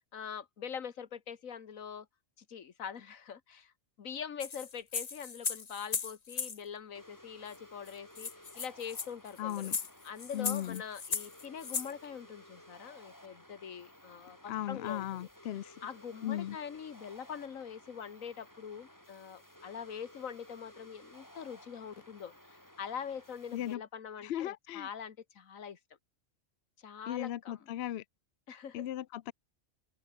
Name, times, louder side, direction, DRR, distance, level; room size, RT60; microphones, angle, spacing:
voice 1, 0.1-2.1 2.4-3.7 4.0-8.3 8.6-9.7 10.0-15.3 15.8-25.8 26.8-27.7 28.5-28.9, left 7 dB, 80° left, 1.7 m, -43 dB
sound 1, 4.4-6.6 7.5-7.6 7.9-11.9, left 5 dB, 35° left, 0.9 m, -37 dB
sound 2, 6.9-23.7, equal, 15° left, 7.9 m, -57 dB
voice 2, 9.4-9.8 10.3-10.8 14.5-15.7 16.2-16.6 23.5-23.8 24.2-24.9 27.1-28.0 28.7-29.3, left 12 dB, 60° left, 0.7 m, -37 dB
open air
omnidirectional pair, 1.4 m